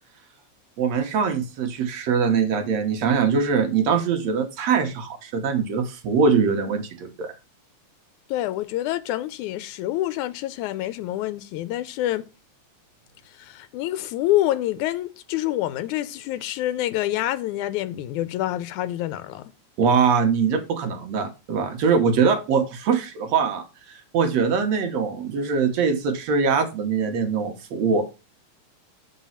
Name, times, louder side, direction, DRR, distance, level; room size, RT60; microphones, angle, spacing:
voice 1, 0.8-7.3 19.8-28.0, right 5 dB, 65° right, 2.2 m, -22 dB
voice 2, 8.3-12.3 13.4-19.4, left 14 dB, 90° left, 2.2 m, -27 dB
7.3 x 5.4 x 5.6 m
omnidirectional pair, 3.4 m